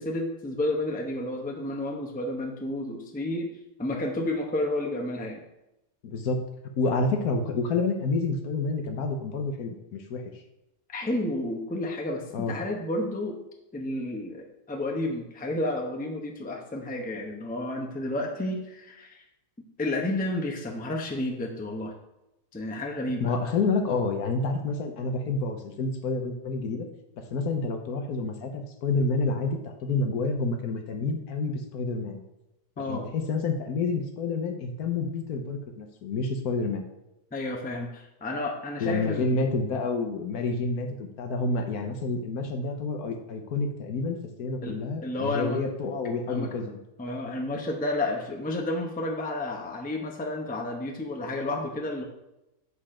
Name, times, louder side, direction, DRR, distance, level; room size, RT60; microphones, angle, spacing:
voice 1, 0.0-3.5 3.8-5.4 10.9-13.4 13.7-19.2 19.8-21.9 22.5-23.3 32.8-33.0 37.3-39.4 44.6-45.6 46.3-46.5 47.0-52.0, left 1 dB, 10° left, 1 dB, 0.7 m, -31 dB
voice 2, 6.0-6.4 6.8-10.2 12.3-12.5 23.2-26.9 27.3-32.2 32.9-36.9 38.8-46.8, left 3 dB, 70° left, 5 dB, 1.4 m, -29 dB
8.1 x 4.2 x 4.9 m, 0.92 s
omnidirectional pair, 1.7 m